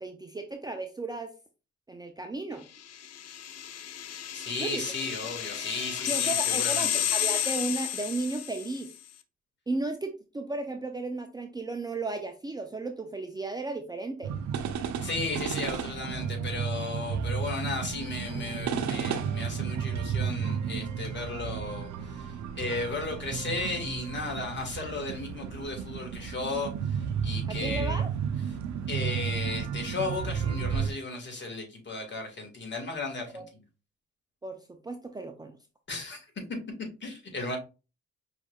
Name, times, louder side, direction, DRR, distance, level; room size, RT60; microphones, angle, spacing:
voice 1, 0.0-1.3 1.9-2.7 4.6-5.0 6.1-8.9 9.7-14.3 27.5-28.1 33.3-33.4 34.4-35.6, right 2 dB, 15° right, 4 dB, 0.5 m, -34 dB
sound 1, 2.9-8.9, left 10 dB, 55° left, 0.6 m, -31 dB
voice 2, 4.4-7.0 15.0-28.0 28.9-33.6 35.9-36.3 37.0-37.6, left 3 dB, 35° left, 1 dB, 2.0 m, -35 dB
sound 2, 14.2-30.9, right 7 dB, 70° right, 0.7 m, -32 dB
5.3 x 3.4 x 2.4 m, 0.31 s
cardioid pair, 90°, 30 cm